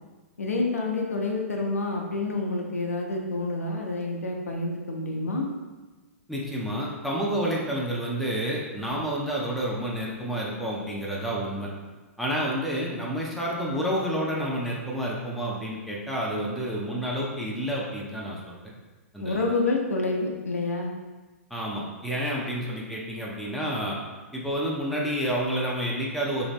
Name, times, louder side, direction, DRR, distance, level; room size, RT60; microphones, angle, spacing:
voice 1, 0.4-5.5 19.2-20.9, left 2 dB, 75° left, 0 dB, 0.6 m, -28 dB
voice 2, 6.3-11.7 12.2-18.6 19.1-19.4 21.5-24.0 24.3-26.5, equal, ahead, -5 dB, 0.6 m, -29 dB
3.2 x 2.7 x 3.1 m, 1.2 s
figure-of-eight pair, 110°, 8 cm